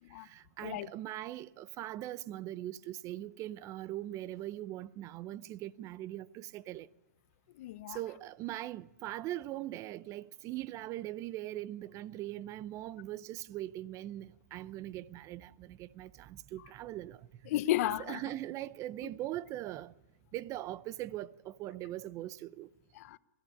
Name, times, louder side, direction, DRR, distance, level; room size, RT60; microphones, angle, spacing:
voice 1, 0.2-6.9 7.9-17.2 18.0-19.9 20.3-22.7, right 14 dB, 35° right, 0.7 m, -41 dB
voice 2, 7.6-8.0 17.5-18.2 22.9-23.2, left 14 dB, 55° left, 0.8 m, -33 dB
21.0 x 13.5 x 9.8 m
hypercardioid pair, 125°, 9 cm